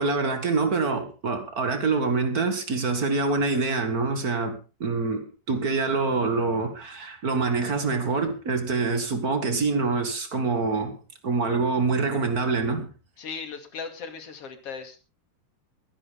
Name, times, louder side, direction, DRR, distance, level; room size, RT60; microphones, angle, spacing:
voice 1, 0.0-11.0 11.2-12.9, right 4 dB, 45° right, 1.2 m, -25 dB
voice 2, 13.2-15.0, left 5 dB, 40° left, 2.9 m, -37 dB
23.0 x 10.5 x 3.6 m
omnidirectional pair, 4.7 m